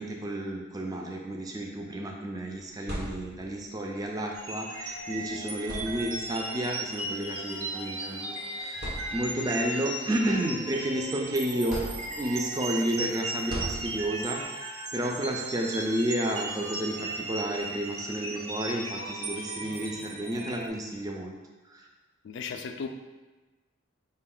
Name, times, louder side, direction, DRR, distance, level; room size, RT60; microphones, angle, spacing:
voice 1, 0.0-11.8 12.2-21.4 21.7-21.8, right 1 dB, 20° right, 0 dB, 0.3 m, -31 dB
sound 1, 2.5-3.7 4.9-5.1 5.6-6.4 7.5-7.7 8.2-8.3 8.8-9.6 10.1-11.1 11.7-12.5 13.5-14.4, right 1 dB, 50° right, 0.9 m, -38 dB
sound 2, 4.3-20.7, right 2 dB, 85° right, 0.7 m, -36 dB
voice 2, 22.2-22.9, left 5 dB, 60° left, 6 dB, 0.3 m, -35 dB
5.2 x 2.2 x 3.7 m, 1.2 s
head